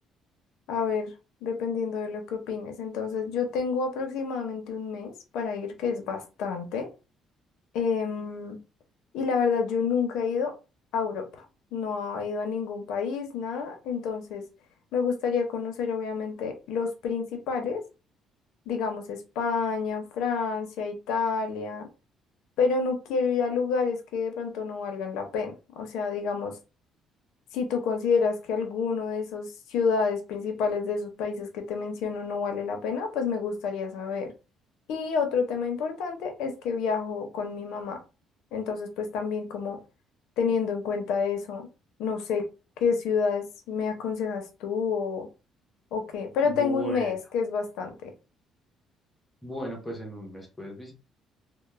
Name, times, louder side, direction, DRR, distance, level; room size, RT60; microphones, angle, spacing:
voice 1, 0.7-1.1 1.4-6.9 7.7-8.6 9.1-10.5 10.9-11.4 11.7-14.4 14.9-17.8 18.7-21.9 22.6-26.5 27.5-34.3 34.9-38.0 38.5-39.8 40.4-41.7 42.0-42.4 42.8-45.3 45.9-48.1, left 5 dB, 75° left, 0.6 m, -29 dB
voice 2, 46.4-47.1 49.4-50.9, right 1 dB, 5° left, 0.6 m, -37 dB
2.2 x 2.1 x 3.1 m
cardioid pair, 175°, 0 cm